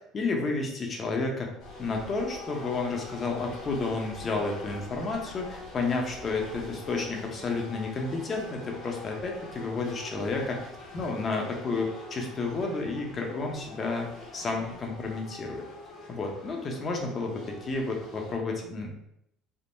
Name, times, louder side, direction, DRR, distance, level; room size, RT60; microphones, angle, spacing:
voice 1, 0.1-1.5 1.8-10.6 10.9-14.1 14.3-15.6 16.1-18.9, left 3 dB, 35° left, 1 dB, 0.7 m, -31 dB
sound 1, 1.6-18.3, left 2 dB, 65° left, 1.5 m, -44 dB
3.5 x 2.0 x 2.6 m, 0.77 s
supercardioid pair, 105°, 0 cm